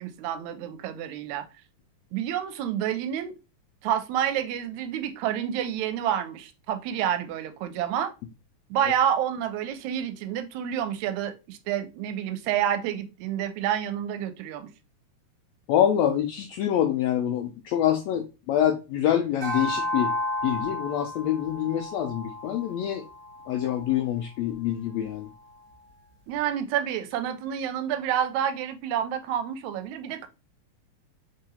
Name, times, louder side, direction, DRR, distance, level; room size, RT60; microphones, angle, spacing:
voice 1, 0.0-1.4 2.1-3.4 3.8-8.1 8.7-14.7 26.3-30.3, right 10 dB, 80° right, 1.8 m, -29 dB
voice 2, 15.7-20.1 20.4-23.0 23.5-25.3, left 10 dB, 80° left, 1.6 m, -26 dB
sound 1, 19.4-24.0, left 1 dB, 45° right, 0.8 m, -32 dB
4.1 x 3.7 x 2.7 m
omnidirectional pair, 3.4 m